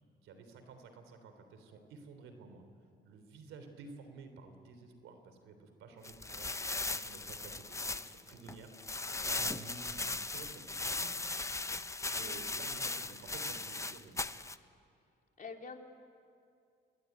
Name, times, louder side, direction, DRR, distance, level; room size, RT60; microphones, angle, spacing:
voice 1, 0.2-2.6 3.0-11.3 12.1-14.3, right 4 dB, 90° right, 8 dB, 3.5 m, -52 dB
sound 1, 6.0-14.6, left 3 dB, 15° left, 0.8 m, -38 dB
voice 2, 12.2-12.5 15.4-15.8, left 4 dB, 40° left, 3 dB, 3.0 m, -46 dB
28.0 x 21.5 x 9.4 m, 2.4 s
cardioid pair, 90°, 20 cm